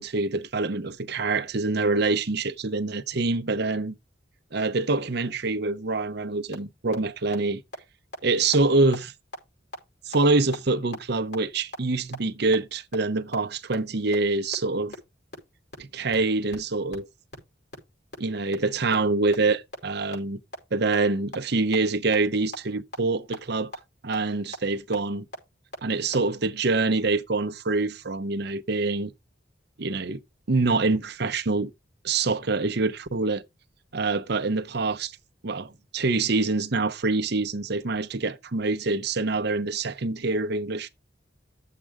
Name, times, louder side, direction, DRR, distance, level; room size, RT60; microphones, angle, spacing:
voice 1, 0.0-3.9 4.5-7.6 8.2-9.1 10.0-14.9 15.8-17.1 18.2-20.4 20.7-23.7 24.0-25.2 25.8-29.1 29.8-30.2 30.5-31.7 32.0-33.4 33.9-35.1 35.4-40.9, right 3 dB, 60° right, 0.8 m, -25 dB
sound 1, 6.5-6.6 6.9-7.0 7.3-7.4 7.7-7.8 8.1-8.2 8.5-8.6 8.9-9.0 9.3-9.4 9.7-9.8 10.1-10.2 10.5-10.6 10.9-11.0 11.3-11.4 11.7-11.8 12.1-12.2 12.5-12.6 12.9-13.0 13.3-13.4 13.7-13.8 14.1-14.2 14.5-14.6 14.9-15.0 15.3-15.4 15.7-15.8 16.1-16.2 16.5-16.6 16.9-17.0 17.3-17.4 17.7-17.8 18.1-18.2 18.5-18.6 18.9-19.0 19.3-19.4 19.7-19.8 20.1-20.2 20.5-20.6 20.9-21.0 21.3-21.4 21.7-21.8 22.1-22.2 22.5-22.6 22.9-23.0 23.3-23.4 23.7-23.8 24.1-24.2 24.5-24.6 24.9-25.0 25.3-25.4 25.7-25.8 26.1-26.2, equal, 60° left, 5.3 m, -34 dB
10.5 x 7.6 x 3.5 m
head